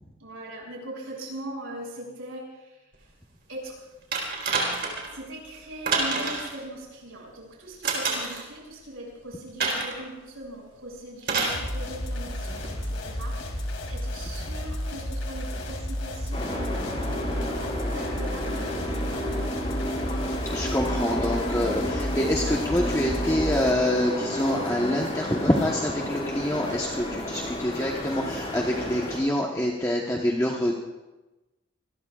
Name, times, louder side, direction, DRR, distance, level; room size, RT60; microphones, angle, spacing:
voice 1, 0.2-3.1 3.5-3.8 5.1-17.2 17.8-20.2, right 1 dB, 85° right, -2 dB, 6.8 m, -40 dB
sound 1, 4.1-5.1 5.9-6.5 7.8-8.4 9.6-10.0 11.2-11.6 12.6-12.7, right 4 dB, 50° right, 4.1 m, -27 dB
sound 2, 11.5-23.7, left 1 dB, 65° left, 2.7 m, -32 dB
sound 3, 16.3-29.2, equal, 30° left, 4.9 m, -31 dB
voice 2, 20.5-30.8, left 1 dB, 15° left, -2 dB, 1.1 m, -26 dB
26.5 x 21.0 x 2.5 m, 1.1 s
head